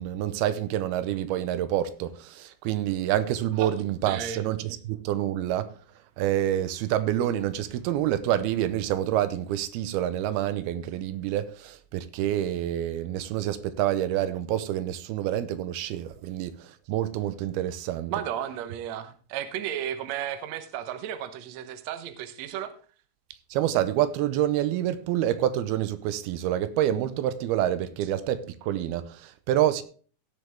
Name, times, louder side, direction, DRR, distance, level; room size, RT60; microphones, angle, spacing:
voice 1, 0.0-5.7 6.2-18.1 23.5-29.8, right 12 dB, 85° right, 2.6 m, -27 dB
voice 2, 4.0-4.4 18.1-22.7, right 10 dB, 70° right, 1.7 m, -33 dB
16.5 x 7.1 x 3.5 m
omnidirectional pair, 4.5 m